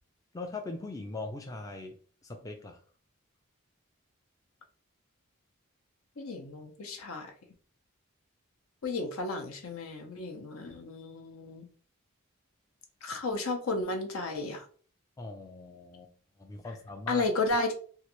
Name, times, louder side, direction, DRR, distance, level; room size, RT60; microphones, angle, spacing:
voice 1, 0.3-2.8 15.2-16.1 16.4-17.2, left 2 dB, 15° left, 0.3 m, -41 dB
voice 2, 6.2-7.3 8.8-11.7 13.0-14.7 17.1-17.7, left 2 dB, 80° left, 0.7 m, -33 dB
3.1 x 2.4 x 2.9 m
head